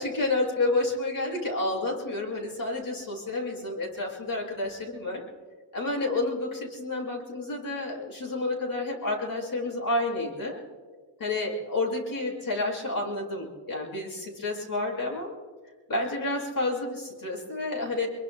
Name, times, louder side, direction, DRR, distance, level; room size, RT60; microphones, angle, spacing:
voice 1, 0.0-5.2 5.7-10.6 11.2-15.3 15.9-18.1, left 2 dB, 45° left, -2 dB, 6.5 m, -30 dB
27.0 x 23.0 x 2.2 m, 1.5 s
cardioid pair, 110°, 46 cm